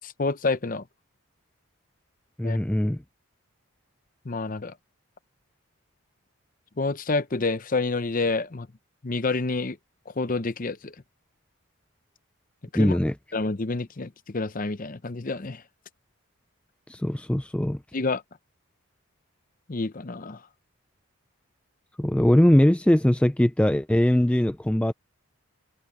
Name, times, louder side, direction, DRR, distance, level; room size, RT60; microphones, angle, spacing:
voice 1, 0.0-0.8 2.4-2.6 4.2-4.7 6.8-8.7 9.0-9.8 10.1-10.9 12.7-13.0 13.3-15.6 17.9-18.2 19.7-20.4, left 3 dB, 40° left, 0.7 m, -28 dB
voice 2, 2.4-3.0 12.7-13.1 16.9-17.8 22.0-24.9, left 1 dB, 5° left, 0.3 m, -21 dB
head